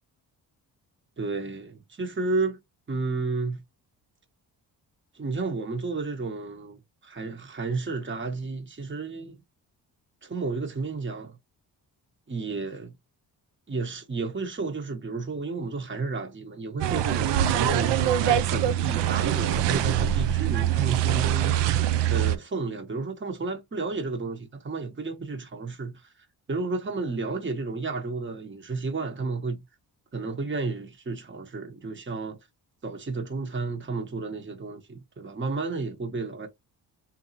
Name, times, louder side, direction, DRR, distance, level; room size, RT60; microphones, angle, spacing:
voice 1, 1.2-2.6 2.9-3.6 5.1-9.4 10.2-11.4 12.3-12.9 13.7-21.7 22.1-26.1 26.5-29.6 30.1-32.4 32.8-36.5, right 3 dB, 30° right, 1.2 m, -32 dB
sound 1, 16.8-22.4, right 11 dB, 80° right, 0.5 m, -24 dB
4.0 x 2.5 x 2.9 m
cardioid pair, 70°, 41 cm